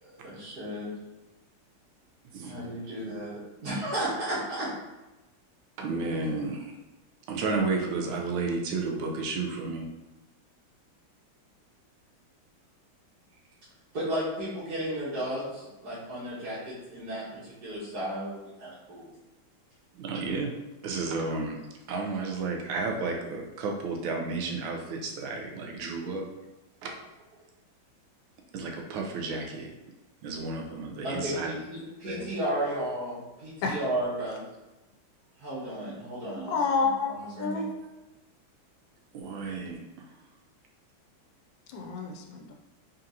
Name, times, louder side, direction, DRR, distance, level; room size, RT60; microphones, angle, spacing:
voice 1, 0.2-0.9 2.4-4.7 6.0-6.3 13.9-19.1 31.0-34.4 35.4-36.6 37.1-37.6, right 1 dB, 55° right, -11 dB, 1.7 m, -34 dB
voice 2, 2.3-2.6 5.8-6.7 7.3-9.9 20.0-20.5 20.8-21.6 21.9-26.3 26.8-26.9 28.5-29.7 30.2-31.5 32.0-32.3 39.1-39.8, right 3 dB, 80° right, 2 dB, 1.5 m, -32 dB
voice 3, 36.5-37.7 41.7-42.5, left 4 dB, 75° left, 2 dB, 1.2 m, -29 dB
3.8 x 3.8 x 2.8 m, 1.1 s
omnidirectional pair, 2.2 m